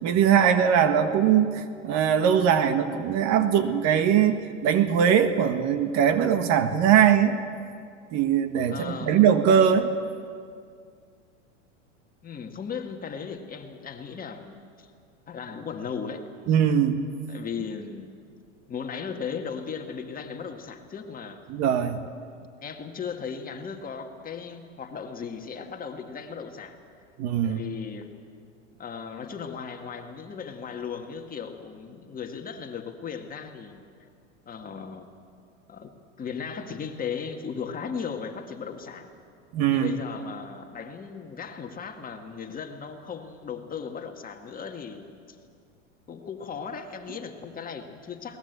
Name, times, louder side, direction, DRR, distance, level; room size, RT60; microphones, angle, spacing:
voice 1, 0.0-7.4 8.1-9.9 16.5-17.0 21.5-22.0 27.2-27.6 39.5-40.0, right 8 dB, 45° right, 9 dB, 1.6 m, -21 dB
voice 2, 8.7-9.2 12.2-14.9 15.3-16.3 17.3-18.1 18.7-21.5 22.6-26.8 27.4-28.2 28.8-34.1 34.5-35.1 35.7-35.9 36.2-39.1 39.7-45.4 46.1-48.4, left 6 dB, 20° left, 4 dB, 1.8 m, -37 dB
21.5 x 19.5 x 8.1 m, 2.2 s
hypercardioid pair, 110°, 38 cm